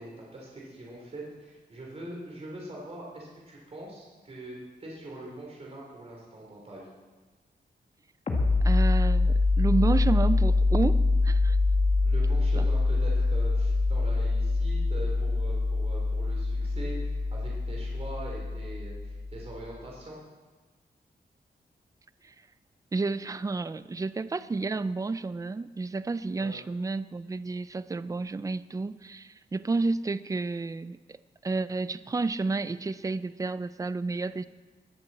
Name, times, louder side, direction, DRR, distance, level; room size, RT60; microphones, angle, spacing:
voice 1, 0.0-6.9 12.0-20.2 26.4-26.6, right 1 dB, 35° right, -3 dB, 3.4 m, -43 dB
sound 1, 8.3-19.6, left 3 dB, 35° left, 1.8 m, -25 dB
voice 2, 8.6-11.6 22.2-22.3 22.9-31.0 31.4-34.4, right 3 dB, 20° right, 14 dB, 0.4 m, -30 dB
20.5 x 7.7 x 7.5 m, 1.3 s
wide cardioid pair, 175°, 18 cm